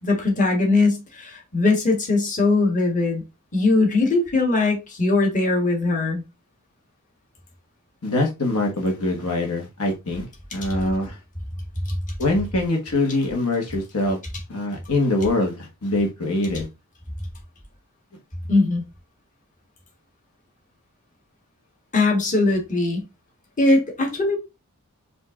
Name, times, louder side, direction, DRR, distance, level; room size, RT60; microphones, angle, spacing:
voice 1, 0.0-3.2 3.5-6.2 11.8-11.9 18.5-18.8 21.9-23.0 23.6-24.4, left 3 dB, 35° left, 1.5 m, -20 dB
voice 2, 8.0-10.3 10.5-11.2 12.2-14.2 14.5-16.7, left 2 dB, 75° left, 1.3 m, -23 dB
5.3 x 2.6 x 3.6 m
head